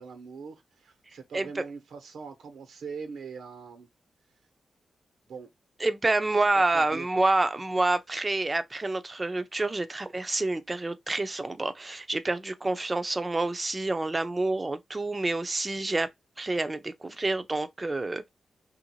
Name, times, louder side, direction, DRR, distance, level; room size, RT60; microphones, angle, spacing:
voice 1, 0.0-3.9 5.3-5.5 6.5-7.1, right 5 dB, 90° right, 1.1 m, -42 dB
voice 2, 5.8-16.1 16.4-18.3, right 2 dB, 20° right, 0.5 m, -28 dB
3.1 x 2.6 x 3.0 m
wide cardioid pair, 145°, 0 cm